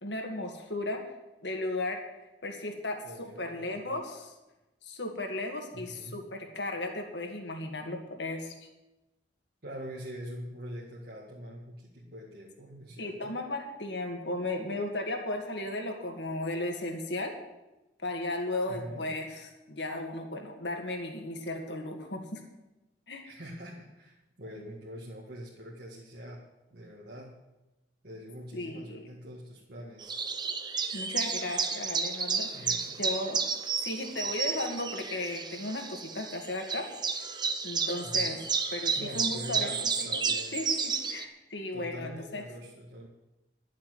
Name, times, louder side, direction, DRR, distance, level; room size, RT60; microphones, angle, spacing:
voice 1, 0.0-1.0 1.4-2.0 2.4-4.3 4.8-8.5 13.0-17.3 18.0-22.4 23.1-23.3 28.5-29.0 30.9-33.5 33.8-36.9 37.6-38.4 38.7-40.2 40.5-40.7 41.1-42.4, left 2 dB, 85° left, 3 dB, 2.1 m, -35 dB
voice 2, 3.0-4.0 5.7-6.2 9.6-13.4 18.7-19.2 22.2-22.3 23.2-27.4 28.0-30.2 32.5-33.0 38.0-38.5 38.9-40.6 41.7-43.1, equal, 60° right, -4 dB, 2.0 m, -44 dB
sound 1, 30.0-41.2, right 5 dB, 25° right, 0.9 m, -32 dB
11.5 x 7.4 x 9.3 m, 1.0 s
head